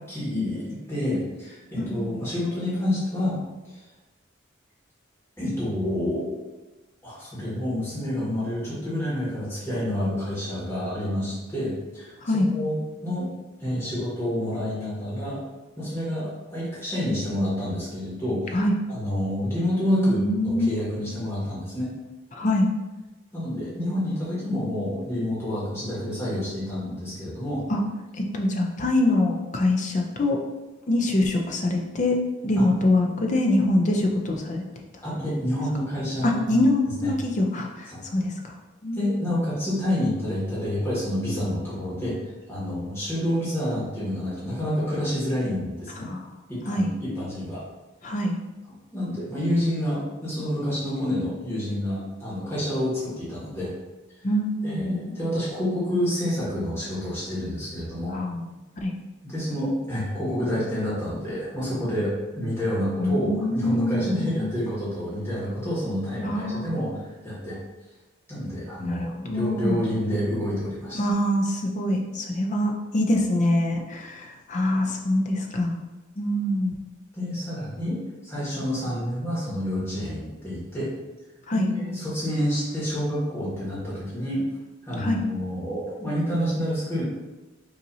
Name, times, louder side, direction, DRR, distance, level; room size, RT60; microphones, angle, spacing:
voice 1, 0.0-3.4 3.7-3.8 5.4-6.4 7.0-12.1 12.5-13.3 13.6-15.4 15.8-18.6 18.9-21.9 23.3-27.6 35.0-36.6 37.0-37.1 37.9-38.0 38.9-42.2 42.5-46.1 46.5-47.6 48.9-53.7 54.6-58.2 59.2-67.6 68.3-71.0 77.1-80.9 81.5-84.5 84.8-87.0, left 1 dB, 10° left, -9 dB, 1.5 m, -28 dB
voice 2, 1.8-2.1 12.2-12.5 18.5-18.7 19.9-20.8 22.3-22.7 27.7-27.8 28.2-30.4 30.9-32.2 32.4-34.6 36.2-38.6 38.8-39.1 46.1-46.2 46.7-46.9 48.0-48.4 54.2-55.1 58.1-58.5 58.8-58.9 63.0-64.7 66.2-66.9 68.8-69.8 70.9-75.8 76.2-76.7 81.5-81.7 84.9-85.2, left 1 dB, 35° left, 1 dB, 0.5 m, -24 dB
5.5 x 2.9 x 2.7 m, 1.1 s
head